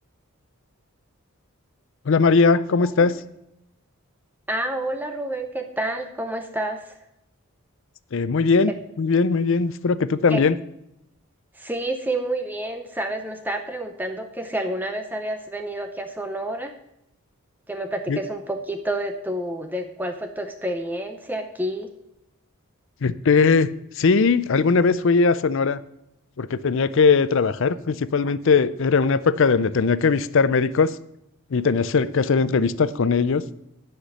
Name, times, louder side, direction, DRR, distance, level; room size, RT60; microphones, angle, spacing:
voice 1, 2.1-3.2 8.1-8.7 9.0-10.6 18.1-18.2 23.0-23.7 24.0-25.8 26.4-31.0 31.5-33.4, left 4 dB, 60° left, 16 dB, 0.5 m, -19 dB
voice 2, 4.5-7.0 8.7-8.8 10.3-10.4 11.6-16.7 17.7-21.9, right 1 dB, 10° right, 6 dB, 0.5 m, -29 dB
10.0 x 5.9 x 6.5 m, 0.83 s
head